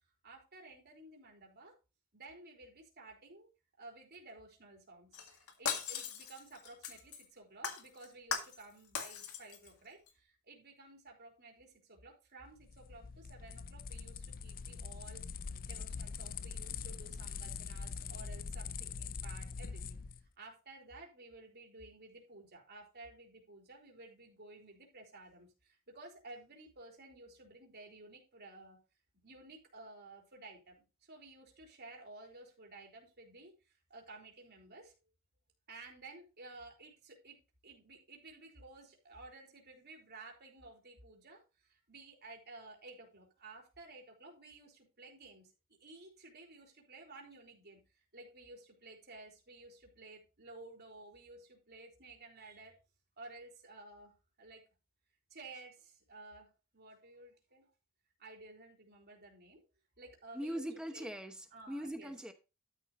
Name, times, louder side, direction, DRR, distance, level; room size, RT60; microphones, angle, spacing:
voice 1, 0.2-1.7 2.1-3.5 3.8-28.8 29.2-30.8 31.0-34.9 35.7-37.4 37.6-45.5 45.8-52.7 53.2-54.6 55.3-57.7 58.2-59.6 60.0-60.6 60.9-61.1 61.5-62.1, right 2 dB, 50° right, 3.9 m, -54 dB
Shatter, 5.1-7.3 7.6-8.7 9.0-9.7 10.1-10.2, left 6 dB, 75° left, 1.9 m, -39 dB
sound 1, 12.6-20.2, left 5 dB, 40° left, 0.4 m, -43 dB
voice 2, 60.3-62.3, equal, 5° right, 0.9 m, -41 dB
12.5 x 7.7 x 3.1 m
head